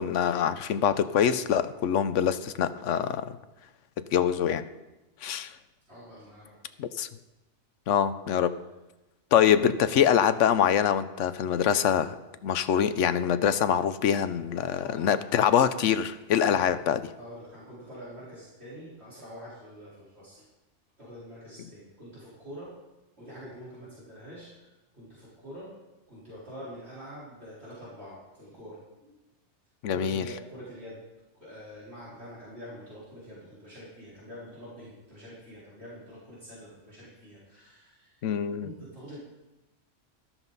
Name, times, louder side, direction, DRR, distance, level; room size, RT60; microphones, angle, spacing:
voice 1, 0.0-3.3 4.1-4.6 5.2-5.5 6.8-7.1 7.9-8.5 9.3-12.1 12.4-17.0 29.8-30.2 38.2-38.7, left 8 dB, 85° left, 12 dB, 1.0 m, -24 dB
voice 2, 5.9-6.8 14.7-15.3 16.4-16.8 17.1-20.5 21.0-22.7 23.2-25.7 26.1-29.2 29.9-31.0 31.3-38.2 38.6-39.2, equal, 60° right, -9 dB, 4.6 m, -45 dB
13.0 x 13.0 x 4.1 m, 1.0 s
omnidirectional pair, 1.2 m